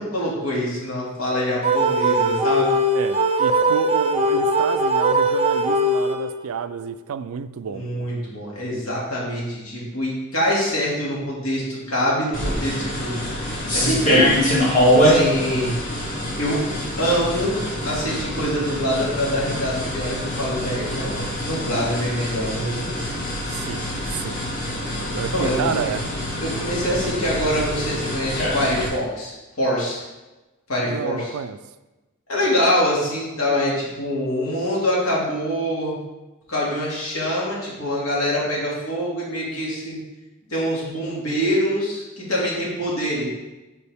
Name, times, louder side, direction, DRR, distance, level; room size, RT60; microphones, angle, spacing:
voice 1, 0.0-2.7 7.7-13.2 13.7-14.3 15.0-15.7 16.3-16.6 17.0-17.6 17.8-23.1 25.3-25.9 26.4-30.0 30.7-31.3 32.3-36.0 36.5-40.0 40.5-43.2, equal, 80° left, -5 dB, 2.1 m, -24 dB
sound 1, 1.6-6.5, right 1 dB, 30° right, 0.6 m, -20 dB
voice 2, 2.9-7.8 15.0-15.2 23.5-23.9 24.1-24.4 25.1-26.1 30.9-31.6, right 7 dB, 90° right, 12 dB, 0.4 m, -30 dB
sound 2, 12.3-28.9, equal, 40° left, 1.8 m, -24 dB
6.9 x 4.6 x 3.5 m, 1.1 s
head